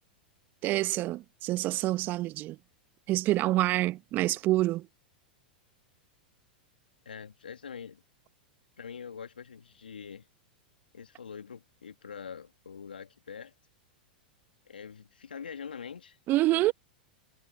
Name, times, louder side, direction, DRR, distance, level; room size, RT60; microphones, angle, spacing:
voice 1, 0.6-2.6 3.1-4.9 16.3-16.7, right 16 dB, 40° right, 1.1 m, -27 dB
voice 2, 7.1-8.0 8.8-10.3 10.9-13.5 14.7-16.2 16.5-16.7, left 6 dB, 80° left, 2.3 m, -44 dB
figure-of-eight pair, 100°, 5 cm